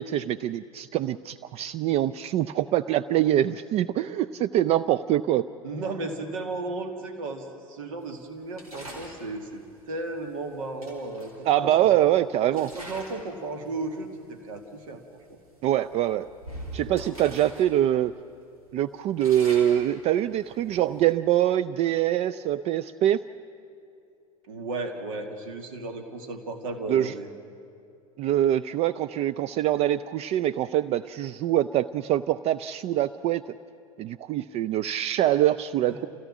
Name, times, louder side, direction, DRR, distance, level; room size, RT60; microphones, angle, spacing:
voice 1, 0.0-5.5 11.5-12.7 15.6-16.3 16.7-18.1 18.7-23.2 26.9-27.1 28.2-33.4 34.0-36.1, right 12 dB, 35° right, 14 dB, 0.4 m, -24 dB
voice 2, 5.6-11.9 12.7-15.0 24.5-27.3 35.9-36.1, right 2 dB, 65° right, 5 dB, 2.1 m, -35 dB
sound 1, 8.5-9.2 10.3-10.4 10.8-12.0 12.5-13.3 13.6-13.9 14.6-14.7 15.0-15.2 15.8-17.7 18.0-18.1 18.6-21.1, right 1 dB, 85° right, 5.2 m, -43 dB
28.0 x 17.0 x 6.1 m, 2.5 s
figure-of-eight pair, 85°, 18 cm